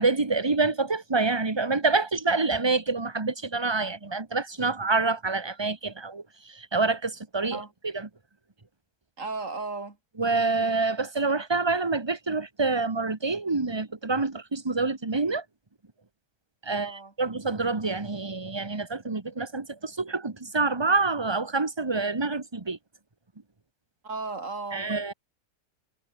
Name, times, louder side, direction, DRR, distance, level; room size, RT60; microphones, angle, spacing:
voice 1, 0.0-8.1 10.2-15.4 16.6-22.8 24.7-25.1, right 3 dB, 15° right, 1.3 m, -27 dB
voice 2, 9.2-10.0 16.7-17.1 24.0-24.9, right 3 dB, 45° right, 3.8 m, -35 dB
omnidirectional pair, 1.9 m